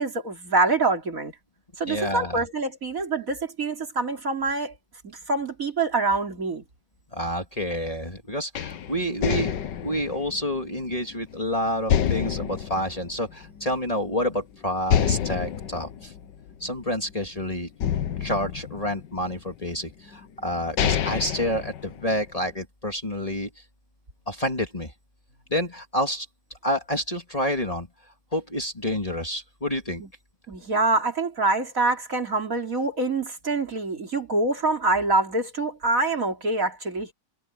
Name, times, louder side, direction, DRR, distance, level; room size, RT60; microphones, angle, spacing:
voice 1, 0.0-1.3 1.8-4.7 5.0-6.6 30.0-30.1 30.5-37.1, right 3 dB, 50° right, 3.6 m, -25 dB
voice 2, 1.8-2.4 7.1-9.5 9.8-16.1 16.6-17.7 18.2-23.5 24.3-24.9 25.5-26.3 26.6-27.9 28.3-30.0, equal, 20° left, 2.6 m, -28 dB
sound 1, 8.5-11.4 11.9-13.8 14.2-14.3 14.9-17.2 17.8-19.4 20.1-20.2 20.6-22.4, left 9 dB, 90° left, 1.7 m, -28 dB
omnidirectional pair, 1.8 m